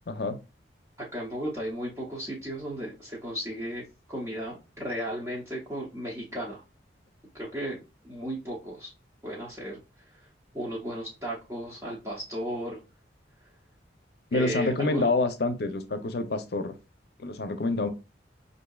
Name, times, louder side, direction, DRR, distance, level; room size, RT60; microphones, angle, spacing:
voice 1, 0.1-0.4 14.3-16.8 17.2-17.9, left 2 dB, 60° left, 9 dB, 0.6 m, -27 dB
voice 2, 1.0-6.6 7.3-8.9 9.2-9.8 10.5-12.8 14.3-15.1, equal, 15° right, -5 dB, 0.7 m, -35 dB
5.4 x 2.6 x 2.3 m, 0.28 s
head